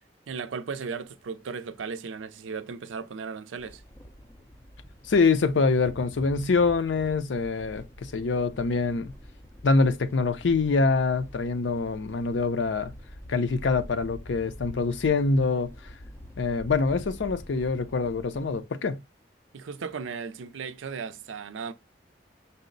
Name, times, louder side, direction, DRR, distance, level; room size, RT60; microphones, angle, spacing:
voice 1, 0.3-3.8 19.5-21.7, right 5 dB, 90° right, 0.5 m, -36 dB
Underground Noise, 3.6-18.6, equal, 15° left, 0.3 m, -46 dB
voice 2, 5.1-9.1 9.6-12.9 13.3-15.7 16.4-19.0, left 4 dB, 70° left, 0.5 m, -25 dB
5.4 x 2.0 x 3.8 m
head